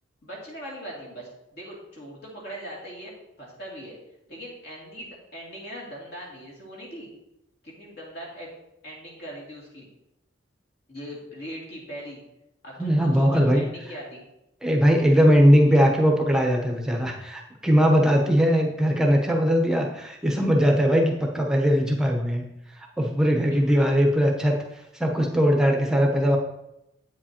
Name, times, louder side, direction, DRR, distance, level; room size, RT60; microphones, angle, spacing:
voice 1, 0.2-4.0 4.3-7.1 7.6-8.5 8.8-9.9 10.9-12.2 12.6-14.2 15.7-15.8 23.4-24.0, equal, 55° left, -4 dB, 2.7 m, -40 dB
voice 2, 12.8-13.7 14.6-22.4 22.7-26.4, equal, 5° right, 1 dB, 0.8 m, -20 dB
8.4 x 7.4 x 2.9 m, 0.86 s
head